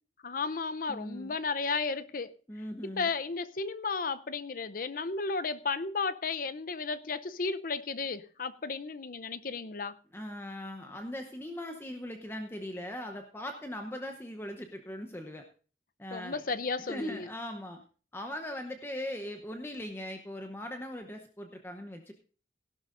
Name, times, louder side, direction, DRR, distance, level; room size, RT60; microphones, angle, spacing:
voice 1, 0.2-2.3 2.8-10.0 16.1-17.3, left 4 dB, 50° left, 0.6 m, -34 dB
voice 2, 0.9-1.3 2.5-3.1 10.1-15.5 16.0-16.4 16.8-17.8 18.1-22.1, left 1 dB, 15° left, 0.8 m, -40 dB
16.5 x 12.0 x 2.5 m
head